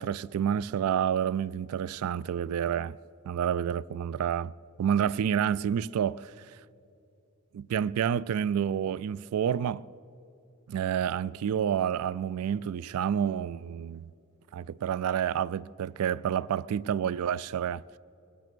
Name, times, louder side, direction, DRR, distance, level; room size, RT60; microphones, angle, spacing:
voice 1, 0.0-3.0 3.3-4.5 4.8-6.3 7.5-9.8 10.7-14.1 14.5-17.8, right 8 dB, 80° right, 0.3 m, -29 dB
21.0 x 9.3 x 6.1 m
head